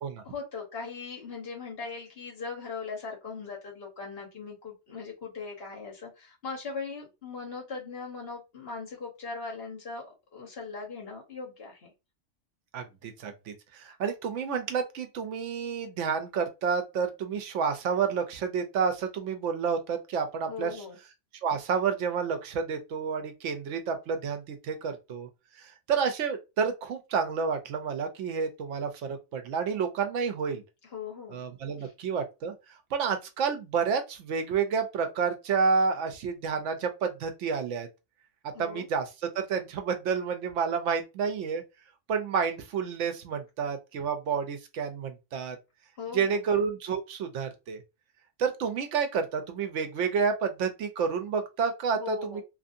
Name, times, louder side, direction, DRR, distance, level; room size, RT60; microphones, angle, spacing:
voice 1, 0.2-11.9 20.5-21.0 30.9-31.4 31.8-31.9 38.5-38.9 46.0-46.4 51.9-52.4, left 5 dB, 55° left, 1.3 m, -39 dB
voice 2, 12.7-20.8 21.4-25.3 25.9-30.6 31.3-32.5 32.9-37.9 38.6-41.6 42.1-45.6 46.1-47.8 48.4-52.4, right 6 dB, 80° right, 1.0 m, -30 dB
2.8 x 2.6 x 2.5 m
omnidirectional pair, 1.2 m